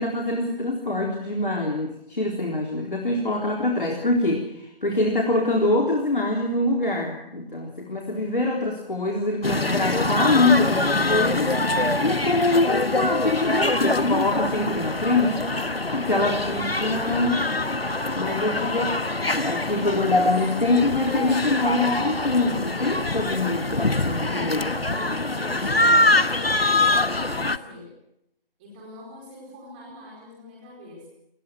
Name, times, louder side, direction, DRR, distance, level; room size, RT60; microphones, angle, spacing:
voice 1, 0.0-15.4 15.9-17.4 18.2-19.0 19.4-24.7, left 2 dB, 60° left, 0 dB, 4.0 m, -24 dB
sound 1, 9.4-27.6, left 2 dB, 90° left, 1.3 m, -24 dB
voice 2, 15.5-16.1 24.9-27.9 28.6-31.1, left 1 dB, 10° right, -2 dB, 4.6 m, -43 dB
27.5 x 19.5 x 6.3 m, 0.79 s
figure-of-eight pair, 160°, 29 cm